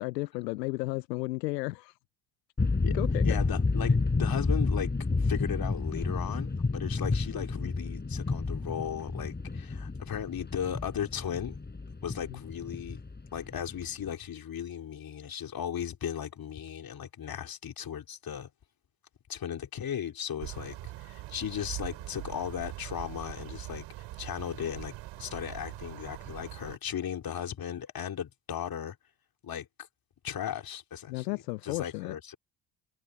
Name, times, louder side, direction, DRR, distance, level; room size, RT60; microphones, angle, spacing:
voice 1, 0.0-2.0 2.9-3.4 12.3-12.4 31.1-32.1, left 21 dB, 80° left, 0.9 m, -33 dB
sound 1, 2.6-14.1, left 3 dB, 20° left, 5.0 m, -30 dB
voice 2, 3.2-4.9 5.2-11.6 12.0-13.0 13.3-18.5 19.3-23.9 24.2-29.0 29.4-29.7 30.2-32.4, left 9 dB, 45° left, 3.5 m, -36 dB
sound 2, 20.4-26.8, right 17 dB, 65° right, 7.2 m, -42 dB
hypercardioid pair, 55°, 49 cm